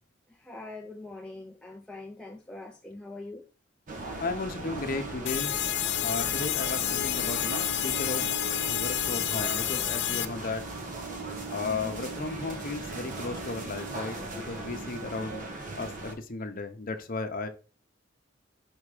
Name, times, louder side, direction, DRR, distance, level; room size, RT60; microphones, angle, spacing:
voice 1, 0.3-3.5 6.0-6.3 11.6-12.0, left 2 dB, 5° left, 0.5 m, -43 dB
sound 1, 3.9-16.1, right 3 dB, 45° right, 1.2 m, -38 dB
voice 2, 4.2-5.7 6.0-8.3 8.7-10.7 11.5-15.5 15.8-17.5, left 3 dB, 45° left, 0.8 m, -35 dB
sound 2, 5.3-10.3, left 13 dB, 65° left, 0.5 m, -29 dB
5.4 x 3.6 x 4.9 m
head